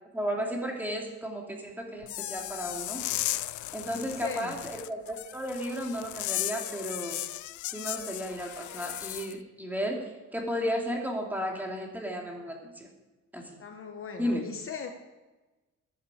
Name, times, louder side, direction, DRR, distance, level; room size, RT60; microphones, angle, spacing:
voice 1, 0.1-3.0 3.7-7.2 7.7-12.9 13.3-13.6 14.2-14.5, equal, 5° right, 0 dB, 2.8 m, -34 dB
sound 1, 2.0-9.3, left 15 dB, 85° left, 0.5 m, -36 dB
voice 2, 4.0-4.5 13.6-14.9, left 5 dB, 45° left, 5 dB, 1.2 m, -39 dB
15.0 x 10.5 x 5.0 m, 1.1 s
cardioid pair, 135°, 29 cm